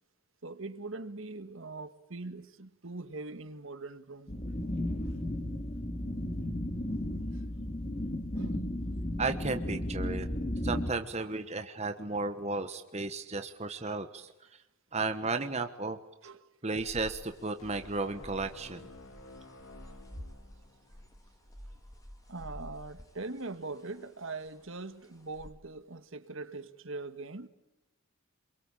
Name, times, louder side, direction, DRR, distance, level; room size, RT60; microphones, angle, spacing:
voice 1, 0.4-4.3 8.3-8.6 16.2-16.4 22.3-27.5, right 3 dB, 65° right, 11 dB, 1.7 m, -42 dB
sound 1, 4.3-10.9, left 1 dB, 30° left, 2.2 m, -34 dB
voice 2, 9.2-10.3 10.6-14.3 14.9-16.0 16.6-18.8, right 3 dB, 30° right, 8 dB, 1.2 m, -34 dB
sound 2, 16.7-25.5, equal, 15° left, 3.1 m, -50 dB
sound 3, 17.6-21.1, left 2 dB, 75° left, 2.9 m, -52 dB
27.5 x 23.0 x 8.9 m, 0.95 s
head